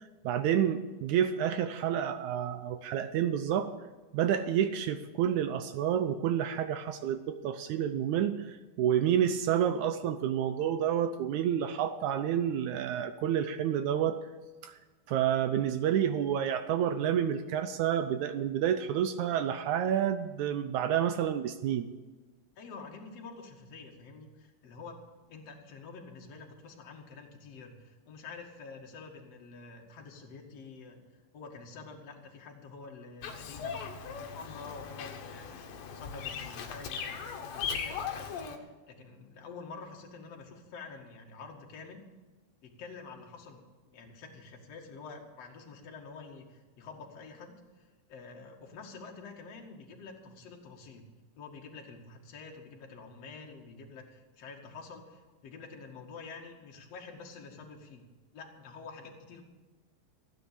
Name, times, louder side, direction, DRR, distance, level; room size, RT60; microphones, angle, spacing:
voice 1, 0.0-3.7 4.1-14.2 14.6-14.8 15.1-21.9, right 9 dB, 75° right, 10 dB, 1.8 m, -29 dB
voice 2, 22.6-25.0 25.3-35.6 35.9-42.0 42.6-51.1 51.4-58.0 58.3-59.4, left 4 dB, 50° left, 0 dB, 2.9 m, -48 dB
Bird vocalization bird call bird song, 33.2-38.6, left 6 dB, 80° left, 3.0 m, -38 dB
16.0 x 9.8 x 6.8 m, 1.2 s
omnidirectional pair, 4.0 m